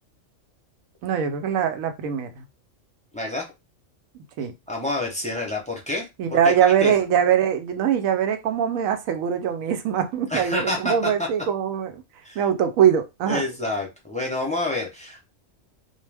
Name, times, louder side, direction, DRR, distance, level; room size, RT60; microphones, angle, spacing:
voice 1, 1.0-2.4 4.4-4.5 6.2-12.0 12.4-13.4, right 8 dB, 85° right, 1.0 m, -22 dB
voice 2, 3.1-3.4 4.7-6.0 6.8-6.9 10.3-11.3 12.2-12.4 13.3-15.2, left 2 dB, 10° left, 0.4 m, -28 dB
2.4 x 2.1 x 3.3 m
omnidirectional pair, 1.4 m